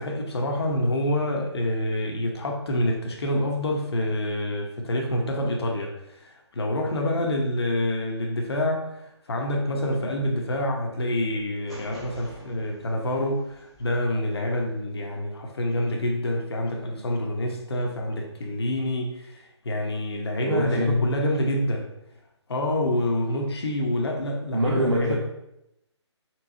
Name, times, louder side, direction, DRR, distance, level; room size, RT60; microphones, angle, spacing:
voice 1, 0.0-21.9 22.5-25.2, left 1 dB, 60° left, 1 dB, 1.0 m, -27 dB
sound 1, 11.7-14.0, right 1 dB, ahead, 0.3 m, -47 dB
voice 2, 20.4-21.1 24.5-25.2, equal, 90° right, -2 dB, 0.9 m, -24 dB
4.6 x 3.9 x 2.7 m, 0.85 s
hypercardioid pair, 165°, 15 cm